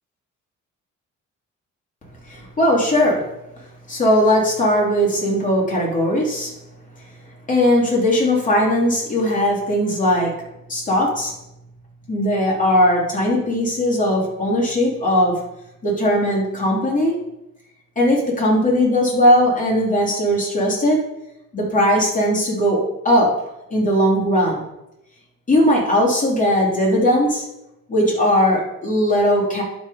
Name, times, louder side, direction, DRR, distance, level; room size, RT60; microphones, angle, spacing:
voice 1, 2.3-3.3 3.9-6.5 7.5-10.4 10.7-11.3 12.1-15.4 15.8-17.2 18.0-21.0 21.5-23.3 23.7-24.6 25.5-27.5 27.9-29.6, equal, 25° left, -3 dB, 3.5 m, -18 dB
11.5 x 4.2 x 5.0 m, 0.88 s
cardioid pair, 90°, 30 cm